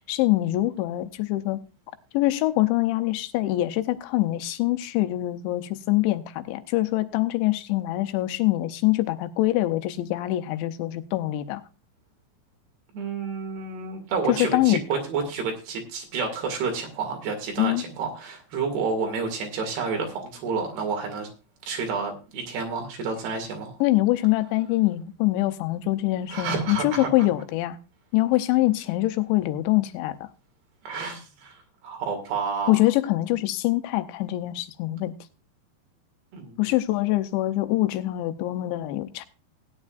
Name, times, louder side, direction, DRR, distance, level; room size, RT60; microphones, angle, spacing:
voice 1, 0.0-1.6 2.1-11.6 14.3-14.8 17.6-17.8 23.8-27.8 28.1-30.3 32.7-35.1 36.6-39.3, left 17 dB, 90° left, 3.1 m, -24 dB
voice 2, 12.9-21.3 21.7-23.8 26.3-27.1 30.8-31.6 31.8-32.8 36.3-36.7, right 5 dB, 70° right, 4.3 m, -30 dB
17.5 x 9.8 x 2.5 m
omnidirectional pair, 5.1 m